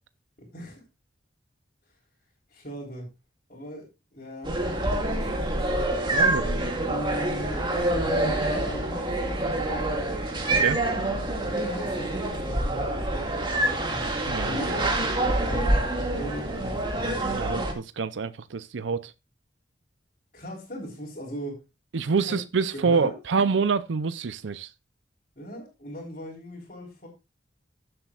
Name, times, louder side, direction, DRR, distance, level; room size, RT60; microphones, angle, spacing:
voice 1, 0.4-0.8 2.5-3.1 3.5-4.6 5.1-5.9 6.9-10.4 11.4-14.1 14.5-14.9 15.5-15.8 16.1-17.2 20.3-21.6 22.2-22.4 22.7-23.1 25.4-27.1, equal, 45° left, 3.6 m, -38 dB
sound 1, 4.4-17.7, right 2 dB, 25° right, 2.0 m, -26 dB
voice 2, 6.1-6.6 10.5-10.8 14.3-14.8 17.3-19.1 21.9-24.7, right 5 dB, 75° right, 0.5 m, -27 dB
15.0 x 7.7 x 2.4 m
head